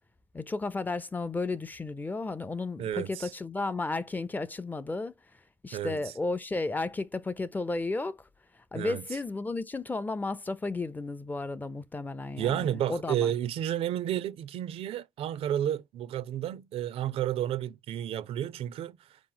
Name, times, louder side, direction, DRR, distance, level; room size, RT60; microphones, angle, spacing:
voice 1, 0.3-5.1 5.6-8.2 8.7-13.3, left 3 dB, 15° left, 0.4 m, -33 dB
voice 2, 2.8-3.3 5.7-6.1 8.7-9.0 12.4-19.0, right 11 dB, 85° right, 0.5 m, -31 dB
4.6 x 3.0 x 3.8 m
cardioid pair, 115°, 10 cm